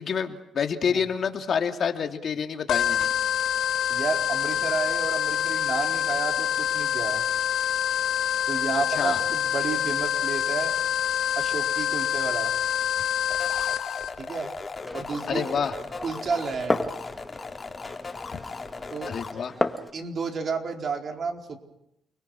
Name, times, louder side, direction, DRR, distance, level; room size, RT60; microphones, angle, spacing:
voice 1, 0.0-3.1 8.7-9.2 15.3-15.7 18.3-18.4 19.1-19.5, left 6 dB, 55° left, 5 dB, 2.7 m, -28 dB
sound 1, 2.7-14.1, left 10 dB, 75° left, 1.8 m, -26 dB
voice 2, 3.9-7.2 8.5-10.7 11.3-12.5 14.2-14.5 14.9-15.5 16.0-16.9 18.9-19.1 19.9-21.6, right 5 dB, 50° right, 3 dB, 4.3 m, -31 dB
sound 2, 13.3-19.3, left 4 dB, 35° left, 2.8 m, -38 dB
Glass, 14.8-19.9, left 1 dB, 10° left, 1.8 m, -33 dB
30.0 x 21.5 x 6.4 m, 0.82 s
cardioid pair, 90°, 0 cm